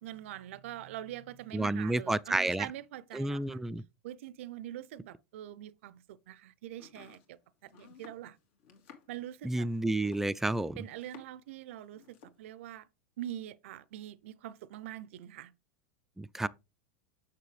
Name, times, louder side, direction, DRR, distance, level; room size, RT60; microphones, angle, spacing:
voice 1, 0.0-3.6 4.0-8.4 9.1-9.7 10.8-12.9 13.2-15.5, right 12 dB, 70° right, 0.5 m, -44 dB
voice 2, 1.5-2.7 3.1-3.8 9.4-10.8 16.2-16.5, right 2 dB, 5° right, 0.3 m, -30 dB
Domestic sounds home sounds, 6.7-11.5 11.8-12.4, left 7 dB, 70° left, 2.2 m, -56 dB
6.7 x 6.4 x 3.2 m
hypercardioid pair, 100°, 7 cm